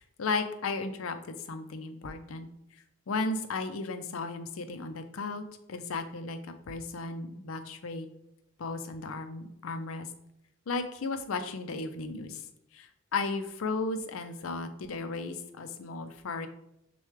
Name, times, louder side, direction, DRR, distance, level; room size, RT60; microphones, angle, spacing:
voice 1, 0.0-2.5 3.1-6.4 6.7-8.1 8.6-10.1 10.7-12.4 12.7-16.5, left 3 dB, 80° left, 9 dB, 0.5 m, -35 dB
6.3 x 2.3 x 3.3 m, 0.82 s
head